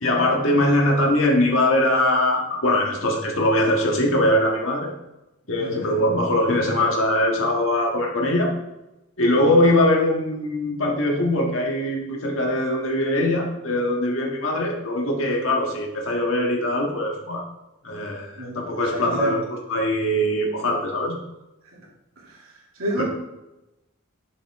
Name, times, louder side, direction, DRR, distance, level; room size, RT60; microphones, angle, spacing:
voice 1, 0.0-4.9 5.5-8.5 9.2-17.5 17.8-19.4 19.7-21.2 23.0-23.1, left 1 dB, 70° left, 0 dB, 1.7 m, -21 dB
voice 2, 18.4-19.4 21.7-21.8 22.2-22.4 22.8-23.0, right 1 dB, 80° right, -4 dB, 2.6 m, -29 dB
7.0 x 6.9 x 3.6 m, 0.96 s
head